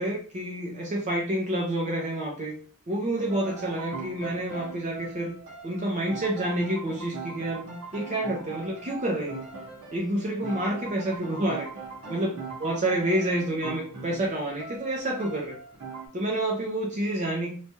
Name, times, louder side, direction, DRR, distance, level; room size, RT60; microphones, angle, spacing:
voice 1, 0.0-2.6 2.9-5.3 5.6-7.6 7.9-9.5 9.9-11.7 12.1-15.6 16.1-17.6, right 1 dB, 35° right, -2 dB, 0.5 m, -28 dB
sound 1, 3.2-16.1, right 4 dB, 80° right, 0.9 m, -41 dB
3.2 x 2.2 x 2.7 m, 0.41 s
head